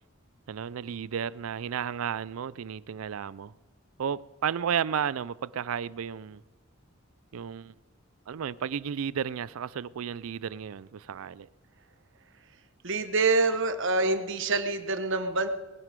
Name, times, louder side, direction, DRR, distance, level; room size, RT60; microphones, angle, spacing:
voice 1, 0.5-3.5 4.0-6.4 7.3-7.7 8.3-11.5, right 8 dB, 80° right, 0.4 m, -33 dB
voice 2, 12.8-15.5, right 3 dB, 65° right, 1.2 m, -26 dB
20.0 x 10.5 x 5.2 m
head